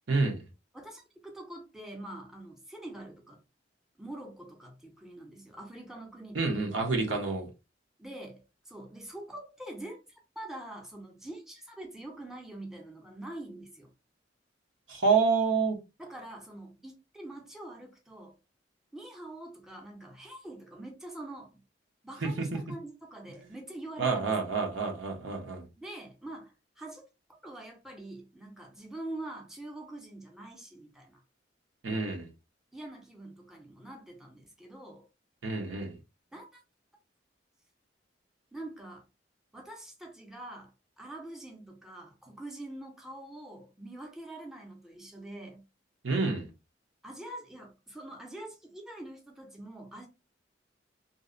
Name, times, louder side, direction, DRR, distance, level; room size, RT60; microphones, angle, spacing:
voice 1, 0.1-0.4 6.3-7.5 14.9-15.8 22.2-22.5 24.0-25.6 31.8-32.3 35.4-36.0 46.0-46.5, right 4 dB, 90° right, 0.7 m, -28 dB
voice 2, 0.7-3.4 4.0-6.6 8.0-10.0 10.4-13.9 16.0-18.3 18.9-21.6 22.0-24.5 25.8-27.0 27.4-31.2 32.7-35.1 36.3-36.6 38.5-39.1 39.5-45.6 47.0-50.1, right 1 dB, 5° right, 0.5 m, -45 dB
2.6 x 2.0 x 2.4 m
head